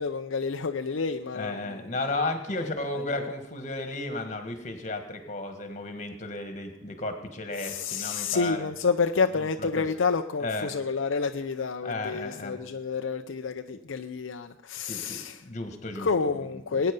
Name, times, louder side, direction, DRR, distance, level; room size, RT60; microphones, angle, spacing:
voice 1, 0.0-1.9 2.9-3.3 7.6-15.4 16.0-16.9, left 5 dB, 75° left, 6 dB, 0.6 m, -29 dB
voice 2, 1.3-8.7 9.7-9.8 10.4-10.7 11.8-12.6 14.9-16.1 16.7-16.8, left 2 dB, 35° left, 6 dB, 1.7 m, -33 dB
20.0 x 9.1 x 5.3 m, 0.91 s
head